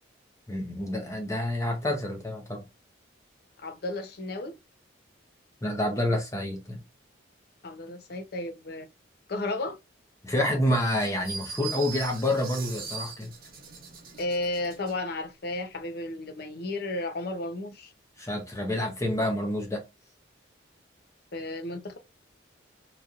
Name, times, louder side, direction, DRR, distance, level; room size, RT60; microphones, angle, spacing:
voice 1, 0.5-2.6 5.6-6.8 10.2-13.3 18.2-19.8, left 1 dB, 15° left, 0.7 m, -28 dB
voice 2, 3.6-4.5 7.6-8.9 9.3-9.8 14.2-17.9 21.3-22.0, left 2 dB, 55° left, 0.6 m, -33 dB
sound 1, 11.0-15.0, right 6 dB, 50° right, 0.9 m, -40 dB
3.0 x 2.7 x 2.4 m
head